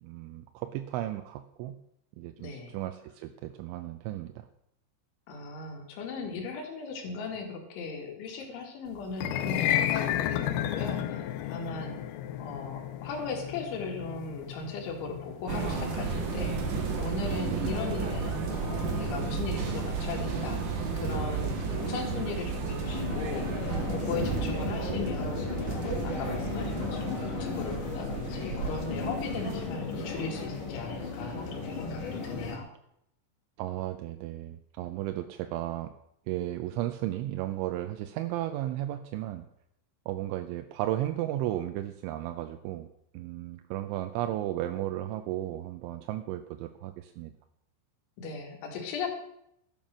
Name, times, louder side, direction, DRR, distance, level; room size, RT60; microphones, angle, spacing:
voice 1, 0.0-1.7 2.2-4.3 17.5-17.6 33.6-35.9 36.3-39.4 40.1-42.9 43.1-47.3, right 14 dB, 85° right, 8 dB, 3.0 m, -34 dB
voice 2, 2.4-2.7 5.3-12.0 12.4-20.6 21.0-32.7 48.2-49.2, left 4 dB, 70° left, 3 dB, 4.4 m, -38 dB
sound 1, 9.1-19.4, left 11 dB, 90° left, 2.1 m, -33 dB
sound 2, 15.5-29.6, right 4 dB, 55° right, 2.6 m, -33 dB
sound 3, 22.8-32.6, left 5 dB, 50° left, 3.3 m, -36 dB
12.5 x 8.9 x 6.3 m, 0.76 s
omnidirectional pair, 5.6 m